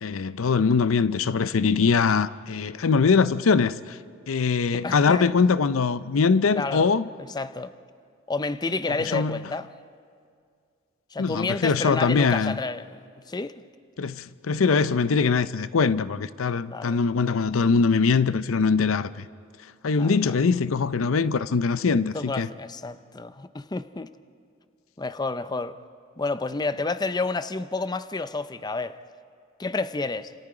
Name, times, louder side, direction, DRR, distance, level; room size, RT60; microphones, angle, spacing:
voice 1, 0.0-4.0 4.3-7.1 9.0-9.4 11.2-12.6 14.0-19.3 19.8-22.5, left 5 dB, 90° left, 0.6 m, -22 dB
voice 2, 4.7-5.3 6.5-6.9 7.3-7.7 8.3-9.7 11.1-12.8 13.3-13.5 16.7-17.0 20.0-20.3 22.1-24.1 25.0-25.8 26.2-29.0 29.6-30.3, left 3 dB, 20° left, 0.5 m, -30 dB
29.5 x 27.0 x 4.9 m
head